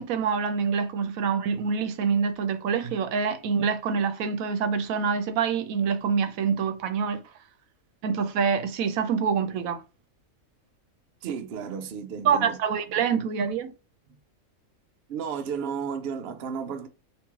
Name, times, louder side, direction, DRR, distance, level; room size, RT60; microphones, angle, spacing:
voice 1, 0.0-7.2 8.0-9.8 12.2-13.7, right 6 dB, 80° right, 1.0 m, -26 dB
voice 2, 11.2-12.6 13.0-13.2 15.1-16.9, right 6 dB, 60° right, 0.7 m, -33 dB
3.1 x 2.9 x 3.5 m
omnidirectional pair, 1.4 m